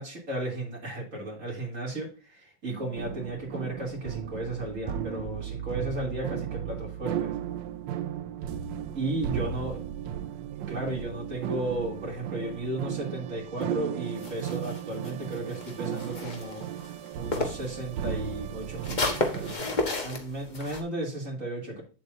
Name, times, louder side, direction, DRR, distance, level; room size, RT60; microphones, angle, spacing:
voice 1, 0.0-7.3 9.0-9.8 10.7-16.6 17.2-21.8, right 2 dB, 45° right, -2 dB, 3.6 m, -34 dB
voice 2, 2.6-3.0 8.3-10.5, right 2 dB, 70° right, -3 dB, 2.4 m, -50 dB
sound 1, 3.0-19.5, right 10 dB, 85° right, 1.3 m, -35 dB
sound 2, 14.2-17.7 18.0-20.8, left 2 dB, 30° left, 1.2 m, -33 dB
8.6 x 7.6 x 2.7 m, 0.35 s
omnidirectional pair, 1.9 m